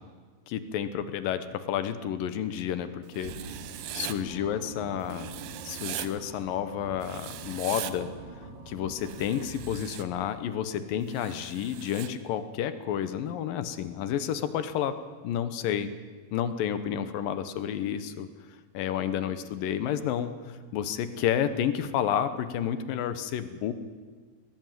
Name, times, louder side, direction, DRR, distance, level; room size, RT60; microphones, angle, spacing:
voice 1, 0.5-3.3 3.9-5.3 5.6-8.1 8.7-15.0 15.2-15.9 16.3-18.3 18.7-23.7, left 9 dB, 70° left, 11 dB, 2.6 m, -30 dB
Writing, 3.1-4.2 5.1-6.1 7.0-7.9 9.0-10.0 11.1-12.1, right 13 dB, 75° right, 2.7 m, -40 dB
sound 1, 3.2-10.5, right 3 dB, 55° right, 3.4 m, -44 dB
19.5 x 18.5 x 9.4 m, 1.5 s
omnidirectional pair, 4.3 m